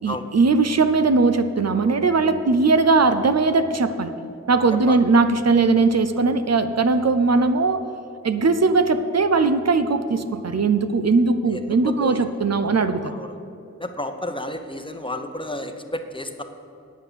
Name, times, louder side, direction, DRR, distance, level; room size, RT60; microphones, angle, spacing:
voice 1, 0.0-4.1 4.5-7.8 8.2-13.1, right 3 dB, 60° right, 10 dB, 0.6 m, -19 dB
voice 2, 11.5-12.3 13.0-13.4 13.8-16.4, left 1 dB, 15° left, 6 dB, 0.9 m, -32 dB
9.5 x 8.8 x 6.9 m, 2.7 s
wide cardioid pair, 70°, 29 cm